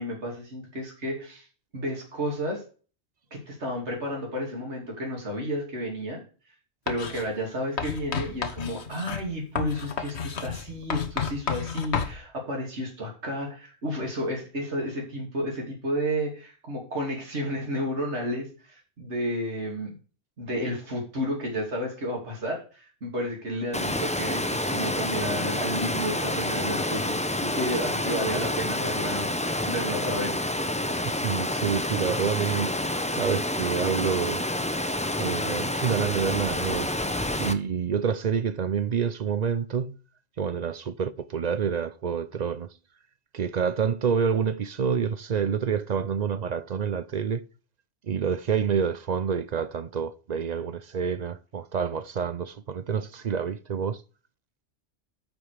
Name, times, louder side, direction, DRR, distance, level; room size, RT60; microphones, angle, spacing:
voice 1, 0.0-1.5 1.7-2.6 3.3-6.2 6.9-19.9 20.4-27.1 27.4-30.4, equal, 75° right, 3.0 m, -32 dB
Writing, 6.9-7.3 7.8-12.2, left 6 dB, 75° left, 1.4 m, -31 dB
Water, 23.7-37.5, left 1 dB, 10° left, 0.6 m, -28 dB
voice 2, 31.0-34.5 35.2-40.0 40.4-42.7 43.3-47.4 48.0-54.0, right 6 dB, 50° right, 0.5 m, -28 dB
13.5 x 4.9 x 5.0 m
omnidirectional pair, 1.2 m